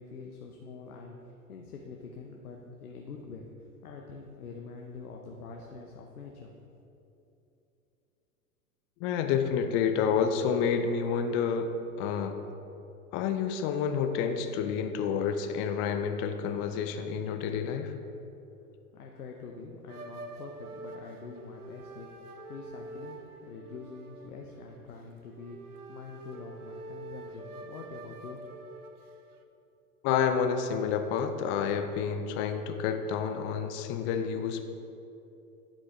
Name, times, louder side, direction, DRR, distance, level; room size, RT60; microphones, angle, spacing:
voice 1, 0.0-6.6 18.9-22.1 22.5-28.4, left 4 dB, 80° left, 1 dB, 0.8 m, -45 dB
voice 2, 9.0-11.7 12.0-12.4 13.1-17.9 30.0-34.6, left 7 dB, 30° left, 7 dB, 0.4 m, -29 dB
sound 1, 19.9-29.4, right 3 dB, 80° right, 0.7 m, -46 dB
11.5 x 5.2 x 3.5 m, 2.9 s
figure-of-eight pair, 90°, 44 cm